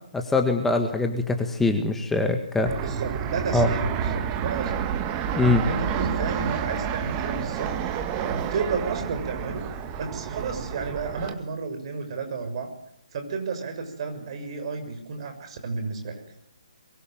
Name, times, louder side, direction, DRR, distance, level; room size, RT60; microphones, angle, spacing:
voice 1, 0.1-2.7 3.5-3.7 5.3-5.6, left 2 dB, 5° left, 4 dB, 1.8 m, -23 dB
Fixed-wing aircraft airplane, 2.6-11.3, right 8 dB, 25° right, 2.0 m, -30 dB
voice 2, 2.8-4.9 5.5-7.7 8.2-9.6 10.0-12.7 13.1-16.4, right 4 dB, 45° right, 6 dB, 6.6 m, -32 dB
24.0 x 22.5 x 9.2 m, 0.73 s
figure-of-eight pair, 140°, 4 cm